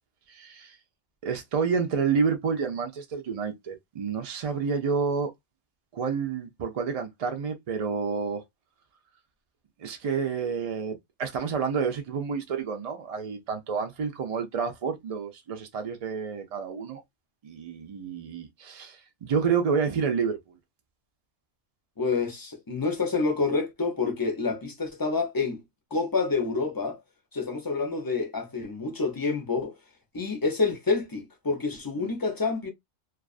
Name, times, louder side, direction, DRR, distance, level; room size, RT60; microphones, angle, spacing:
voice 1, 0.3-0.7 1.2-5.3 5.9-8.4 9.8-17.0 17.4-20.4 32.0-32.1, right 6 dB, 70° right, 0.3 m, -29 dB
voice 2, 22.0-25.6 25.9-27.0 27.3-29.8 30.1-32.7, left 4 dB, 30° left, 0.4 m, -28 dB
2.3 x 2.3 x 2.3 m
omnidirectional pair, 1.2 m